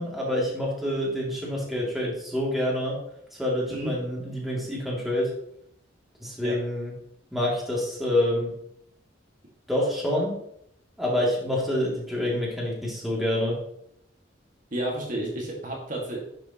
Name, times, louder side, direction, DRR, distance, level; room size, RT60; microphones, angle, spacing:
voice 1, 0.0-3.0 3.4-5.3 6.2-6.9 7.3-8.5 9.7-10.3 11.0-13.6, left 1 dB, ahead, -5 dB, 2.7 m, -27 dB
voice 2, 14.7-16.2, right 1 dB, 45° right, -2 dB, 2.0 m, -31 dB
11.0 x 6.8 x 3.0 m, 0.73 s
head